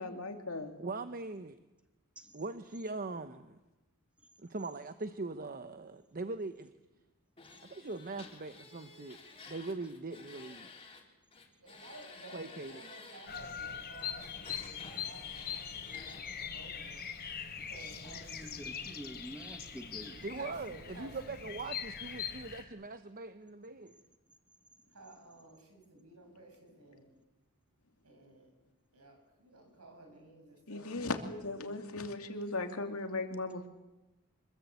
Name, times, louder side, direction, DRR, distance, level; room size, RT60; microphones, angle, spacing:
voice 1, 0.0-0.8 30.7-33.7, left 2 dB, 75° left, 5 dB, 2.7 m, -37 dB
voice 2, 0.8-1.6 2.3-3.6 4.4-6.7 7.7-9.2 9.5-10.7 12.3-12.8 20.2-23.9, right 3 dB, 40° right, 10 dB, 0.9 m, -41 dB
sound 1, 7.4-11.0 11.3-13.4 14.0-16.2, left 4 dB, 25° left, 4.0 m, -53 dB
voice 3, 11.6-17.0 17.5-18.7 20.2-21.4 22.1-22.3 24.9-27.1 28.0-28.5 28.9-31.8 32.1-32.2, right 2 dB, 80° right, 4 dB, 7.5 m, -55 dB
Bird vocalization bird call bird song, 13.3-22.6, left 7 dB, 45° left, 3.4 m, -42 dB
voice 4, 18.0-20.2, equal, 5° right, 7 dB, 1.4 m, -47 dB
25.5 x 21.5 x 8.4 m, 1.0 s
head